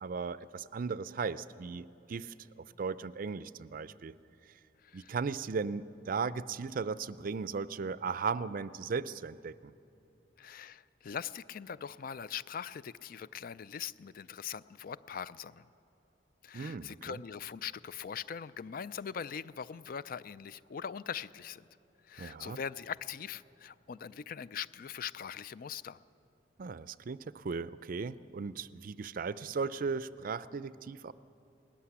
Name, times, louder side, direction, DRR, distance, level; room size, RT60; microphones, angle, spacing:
voice 1, 0.0-4.1 4.9-9.7 16.5-17.2 22.2-22.6 26.6-31.1, right 5 dB, 50° right, 17 dB, 0.4 m, -37 dB
voice 2, 4.8-5.1 10.4-15.7 16.4-21.6 22.0-26.0, left 7 dB, 50° left, 17 dB, 0.4 m, -41 dB
18.5 x 14.0 x 9.9 m, 2.7 s
head